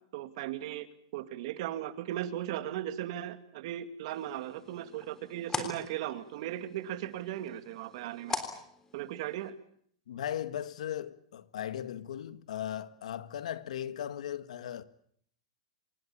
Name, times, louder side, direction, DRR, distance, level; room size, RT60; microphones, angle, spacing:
voice 1, 0.1-0.9 1.1-8.4 8.9-9.5, right 12 dB, 55° right, 2.3 m, -37 dB
sound 1, 4.1-9.5, left 4 dB, 15° left, 3.5 m, -42 dB
voice 2, 10.1-14.8, left 10 dB, 80° left, 1.7 m, -37 dB
27.0 x 19.0 x 8.7 m
supercardioid pair, 150°, 4 cm